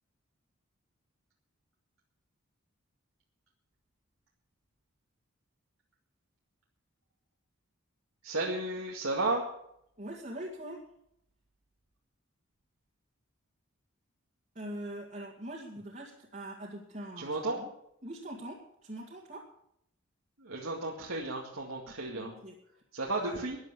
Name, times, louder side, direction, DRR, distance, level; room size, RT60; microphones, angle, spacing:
voice 1, 8.2-9.4 17.2-17.6 20.4-22.3 22.9-23.6, right 2 dB, 80° right, -2 dB, 2.2 m, -33 dB
voice 2, 10.0-10.9 14.5-17.7 18.0-19.5 21.9-22.5 23.2-23.4, right 1 dB, 35° right, -3 dB, 2.2 m, -43 dB
13.5 x 10.5 x 7.0 m, 0.74 s
head